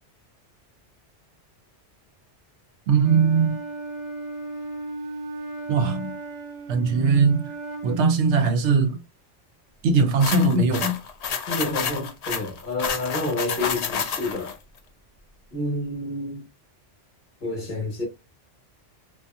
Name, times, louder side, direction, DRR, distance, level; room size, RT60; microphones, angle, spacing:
Wind instrument woodwind instrument, 2.9-8.1, right 2 dB, 55° right, 0.3 m, -36 dB
voice 1, 2.9-3.6 5.7-6.2 6.7-7.5 7.8-9.0 9.8-11.0, right 4 dB, 75° right, 0.8 m, -20 dB
sound 1, 10.2-14.5, left 6 dB, 85° left, 0.3 m, -29 dB
voice 2, 11.5-14.6 15.5-16.4 17.4-18.0, left 2 dB, 50° left, 1.0 m, -29 dB
2.6 x 2.3 x 2.3 m
omnidirectional pair, 1.2 m